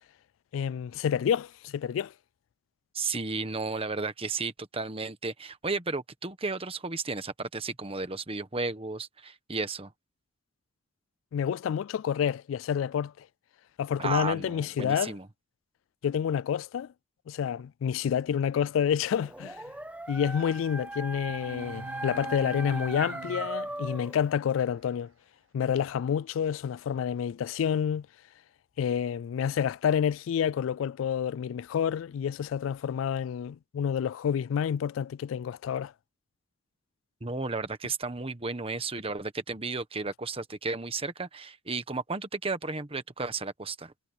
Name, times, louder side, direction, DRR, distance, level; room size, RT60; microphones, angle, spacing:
voice 1, 0.5-2.1 11.3-13.3 13.8-15.2 16.0-16.9 17.3-19.6 20.1-25.1 25.5-28.1 28.8-35.9, left 8 dB, 85° left, 0.3 m, -29 dB
voice 2, 2.9-9.9 14.0-15.3 37.2-43.9, right 3 dB, 30° right, 1.3 m, -33 dB
Dog, 19.1-24.2, right 1 dB, 5° right, 1.1 m, -38 dB
sound 1, 21.3-23.9, right 3 dB, 90° right, 0.6 m, -45 dB
head